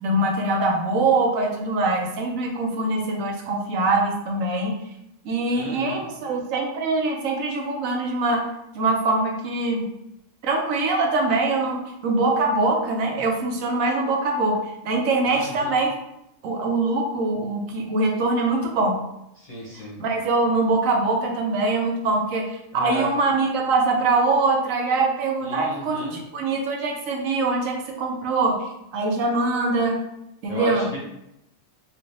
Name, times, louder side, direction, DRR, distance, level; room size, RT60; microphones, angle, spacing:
voice 1, 0.0-4.8 5.2-8.5 8.7-9.9 10.4-15.9 16.4-19.0 20.0-30.0 30.4-30.9, right 3 dB, 85° right, 1 dB, 1.0 m, -23 dB
voice 2, 5.5-6.1 15.3-15.7 19.4-20.0 22.7-23.1 25.4-26.2 30.5-31.0, equal, 40° left, -6 dB, 0.6 m, -33 dB
3.2 x 2.6 x 2.6 m, 0.83 s
omnidirectional pair, 1.4 m